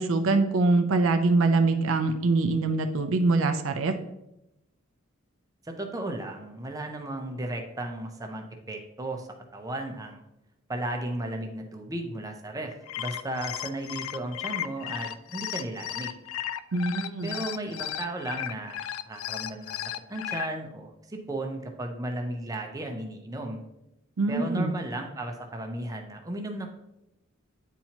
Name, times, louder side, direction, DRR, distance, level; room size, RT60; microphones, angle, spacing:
voice 1, 0.0-3.9 16.7-17.3 24.2-24.7, right 3 dB, 70° right, 7 dB, 0.5 m, -24 dB
voice 2, 5.6-9.3 9.5-10.2 10.7-16.1 17.2-23.6 24.3-26.7, right 1 dB, 15° right, 3 dB, 0.6 m, -35 dB
sound 1, 12.7-20.5, left 11 dB, 80° left, 0.3 m, -35 dB
9.0 x 4.3 x 2.9 m, 0.89 s
head